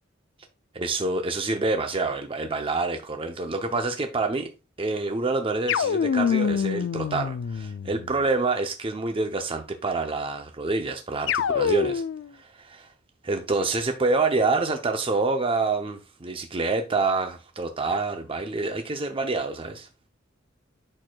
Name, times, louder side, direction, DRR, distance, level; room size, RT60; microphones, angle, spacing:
voice 1, 0.7-4.5 4.8-12.0 12.3-12.9 13.2-19.9, right 3 dB, 30° right, 0.6 m, -27 dB
sound 1, 5.7-8.2 11.3-12.3, left 7 dB, 65° left, 0.3 m, -25 dB
8.7 x 6.2 x 2.2 m
head